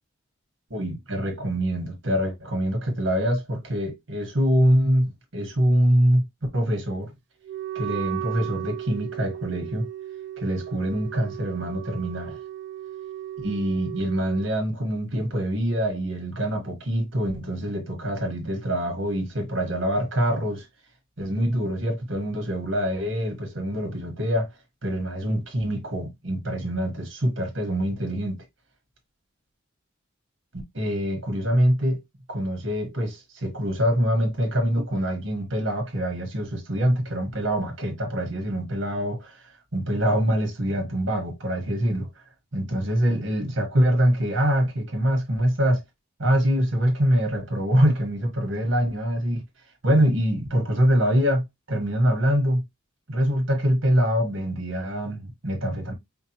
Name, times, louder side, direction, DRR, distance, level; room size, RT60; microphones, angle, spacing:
voice 1, 0.7-6.2 6.5-7.1 7.7-9.9 10.4-12.4 13.4-20.7 21.2-24.5 24.8-28.4 30.7-32.0 32.3-39.4 39.7-42.1 42.5-45.8 46.2-49.4 49.8-52.6 53.1-55.9, equal, 80° right, 1.6 m, -24 dB
Wind instrument woodwind instrument, 7.4-14.5, right 12 dB, 60° right, 0.4 m, -35 dB
5.1 x 2.4 x 2.9 m
head